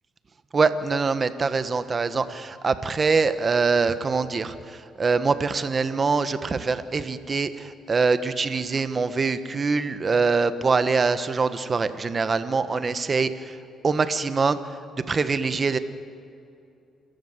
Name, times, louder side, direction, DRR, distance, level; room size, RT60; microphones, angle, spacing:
voice 1, 0.5-13.6 13.8-14.6 15.1-15.8, right 4 dB, 35° right, 12 dB, 1.3 m, -24 dB
28.0 x 13.5 x 8.1 m, 2.5 s
cardioid pair, 90°, 0 cm